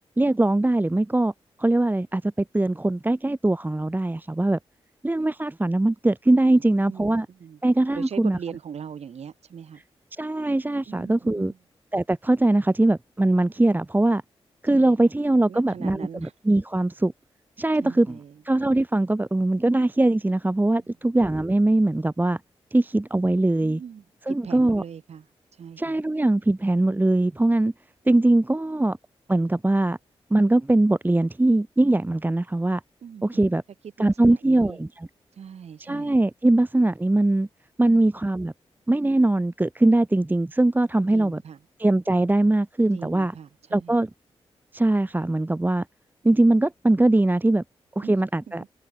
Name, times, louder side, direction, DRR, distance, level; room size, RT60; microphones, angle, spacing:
voice 1, 0.2-1.3 1.6-4.6 5.0-7.3 7.6-8.4 10.2-11.5 11.9-14.2 14.6-17.1 17.6-18.2 18.4-22.4 22.7-23.8 24.3-24.8 25.8-27.7 28.1-29.0 29.3-30.0 30.3-32.8 33.2-33.6 34.0-35.1 35.8-37.5 37.8-38.5 38.9-41.4 41.8-43.3 43.7-44.1 44.7-45.8 46.2-47.6 48.0-48.6, right 2 dB, 15° right, 1.0 m, -21 dB
voice 2, 6.5-7.6 7.9-9.8 10.9-11.6 14.7-15.0 15.5-16.3 17.8-18.4 20.7-20.9 23.6-25.3 25.5-26.0 33.0-33.5 34.0-34.8 35.3-36.2 37.8-38.0 41.1-41.6 42.9-44.0 48.0-48.2, right 7 dB, 80° right, 5.6 m, -40 dB
cardioid pair, 50°, 11 cm